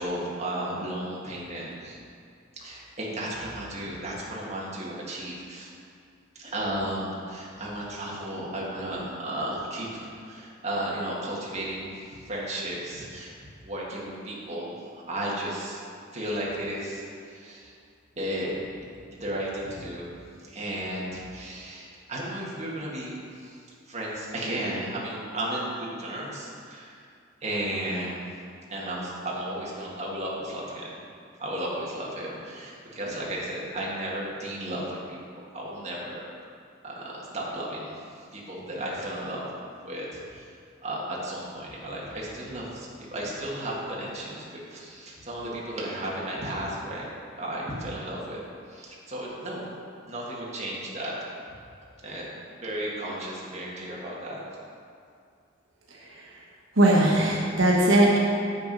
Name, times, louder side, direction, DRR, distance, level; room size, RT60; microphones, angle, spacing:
voice 1, 0.0-2.0 2.6-5.7 6.4-13.3 13.6-15.8 16.1-17.7 18.1-18.5 19.1-20.1 20.5-23.6 23.9-27.0 27.4-28.2 28.7-30.9 31.4-36.2 36.8-37.9 38.3-39.4 39.8-40.5 40.8-47.1 47.3-48.4 48.7-49.6 50.0-51.1 52.0-52.3 52.6-54.4, right 1 dB, 35° right, -5 dB, 1.7 m, -34 dB
voice 2, 56.7-58.2, right 1 dB, 75° right, -3 dB, 1.2 m, -20 dB
7.2 x 6.9 x 5.3 m, 2.4 s
head